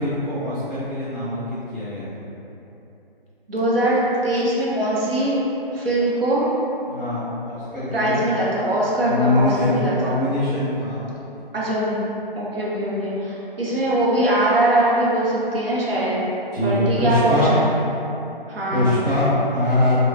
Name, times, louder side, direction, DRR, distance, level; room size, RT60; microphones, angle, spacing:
voice 1, 0.0-2.2 6.9-8.3 9.0-11.0 16.5-17.5 18.7-20.0, left 1 dB, ahead, -17 dB, 0.9 m, -23 dB
voice 2, 3.5-5.4 5.7-6.5 7.9-10.2 11.5-12.0 12.4-16.2 16.6-17.6 18.5-18.9, right 1 dB, 75° right, -7 dB, 0.8 m, -21 dB
3.1 x 2.2 x 2.5 m, 2.9 s
figure-of-eight pair, 150°, 29 cm